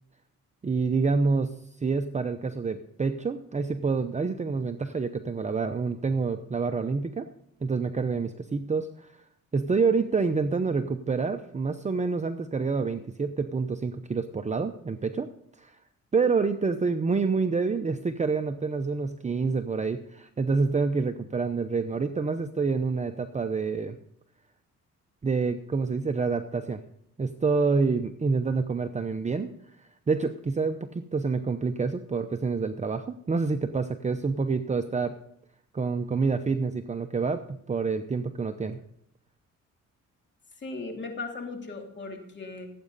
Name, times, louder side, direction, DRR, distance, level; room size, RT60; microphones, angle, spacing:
voice 1, 0.6-7.3 7.6-9.1 9.5-15.3 15.6-15.8 16.1-24.0 25.2-26.8 27.2-29.5 29.8-35.1 35.7-38.8, right 4 dB, 25° right, 7 dB, 0.8 m, -27 dB
voice 2, 40.6-42.7, left 3 dB, 35° left, 2 dB, 3.1 m, -37 dB
17.5 x 8.5 x 4.1 m, 0.73 s
cardioid pair, 90°, 30 cm